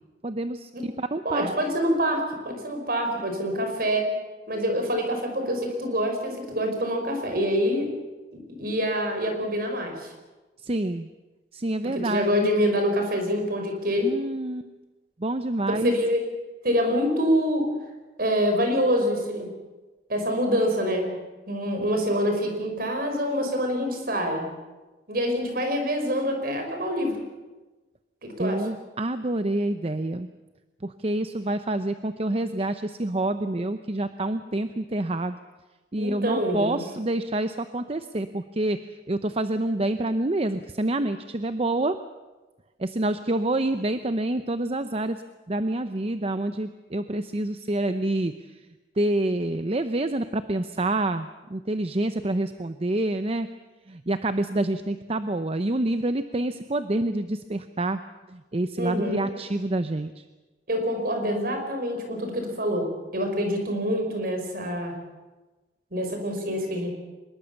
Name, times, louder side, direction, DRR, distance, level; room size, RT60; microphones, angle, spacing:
voice 1, 0.2-1.5 10.6-11.1 11.5-12.5 14.0-14.7 15.2-15.9 28.4-30.3 30.8-35.4 35.9-42.0 42.8-45.2 45.5-48.6 49.0-53.5 53.9-58.0 58.3-60.2, right 1 dB, 35° right, 10 dB, 0.7 m, -27 dB
voice 2, 1.2-4.1 4.5-7.9 8.3-10.1 11.8-14.1 15.8-16.2 16.6-17.7 18.2-19.5 20.1-21.2 21.5-24.5 25.1-27.2 28.2-28.6 36.0-36.8 58.8-59.3 60.7-65.0 65.9-66.9, equal, 55° right, 4 dB, 5.4 m, -26 dB
24.0 x 21.5 x 7.1 m, 1.2 s
head